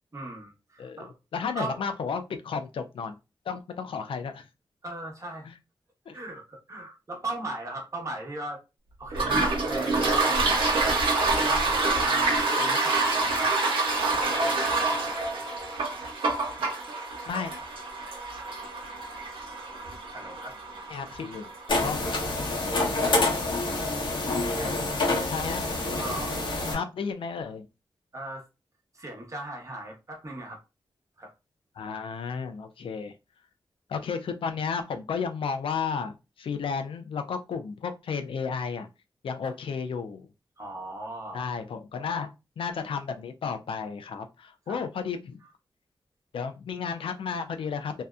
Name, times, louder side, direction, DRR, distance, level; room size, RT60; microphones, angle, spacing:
voice 1, 0.1-1.1 1.5-1.8 4.8-5.5 6.1-8.6 9.0-9.4 9.7-10.8 11.3-13.5 14.1-15.0 20.1-20.6 24.5-24.8 26.0-26.5 28.1-28.5 28.9-30.6 31.2-31.3 40.6-41.5 44.7-44.8, right 2 dB, 35° right, 1.0 m, -38 dB
voice 2, 1.3-3.2 3.5-4.4 5.5-5.6 6.1-6.2 17.3-17.5 20.9-22.0 25.3-25.6 26.7-27.7 31.8-33.1 33.9-38.9 39.2-40.3 41.3-42.3 42.6-45.4 46.3-48.0, left 5 dB, 85° left, 0.4 m, -33 dB
Toilet flush, 9.1-22.5, right 3 dB, 85° right, 0.8 m, -27 dB
sound 1, 21.7-26.7, left 2 dB, 65° left, 0.9 m, -27 dB
2.6 x 2.1 x 2.3 m
wide cardioid pair, 75°, 9 cm